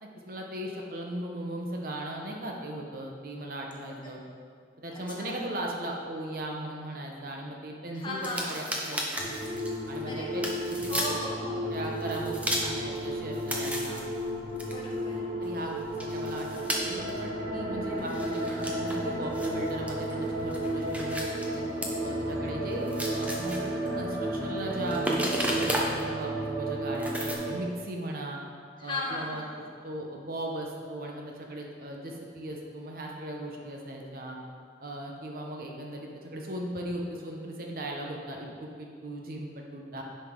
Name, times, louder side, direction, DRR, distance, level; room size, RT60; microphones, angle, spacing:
voice 1, 0.0-4.2 4.8-9.4 9.9-10.4 10.7-11.2 11.7-14.0 15.4-21.3 21.5-21.6 22.0-22.9 23.1-28.4 28.8-29.4 29.8-34.4 34.8-40.0, right 1 dB, 50° right, 0 dB, 0.9 m, -38 dB
voice 2, 7.9-8.7 10.0-10.5 10.9-11.8 14.6-15.3 28.8-29.6, left 2 dB, 25° left, -3 dB, 1.2 m, -37 dB
sound 1, 8.2-10.0 10.4-11.0 11.7-13.0 13.3-15.7 16.0-16.7 17.1-17.2 18.0-22.0 22.2-22.3 22.7-23.9 24.6-26.0 26.9-27.3, equal, 10° right, 0.7 m, -34 dB
sound 2, 9.2-27.5, right 1 dB, 90° right, 1.7 m, -33 dB
10.0 x 5.3 x 3.8 m, 2.1 s
head